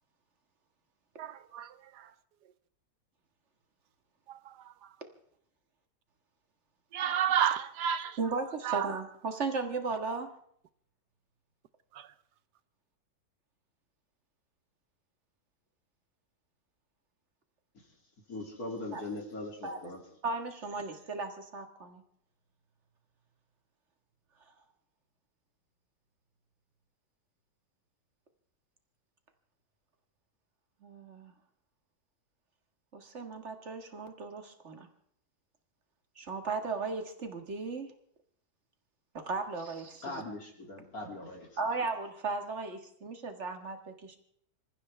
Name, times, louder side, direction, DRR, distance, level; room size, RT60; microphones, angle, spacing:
voice 1, 1.2-2.1 4.3-4.7 6.9-8.2 8.6-8.9 11.9-12.1, right 9 dB, 75° right, 1.5 m, -31 dB
voice 2, 8.2-10.3 18.9-19.0 19.6-19.8 20.2-22.0 30.8-31.3 32.9-34.9 36.2-37.9 39.1-40.2 41.6-44.2, right 4 dB, 40° right, 2.0 m, -36 dB
voice 3, 18.3-20.0 40.0-41.6, left 2 dB, 55° left, 3.2 m, -40 dB
27.0 x 14.5 x 3.4 m
omnidirectional pair, 1.8 m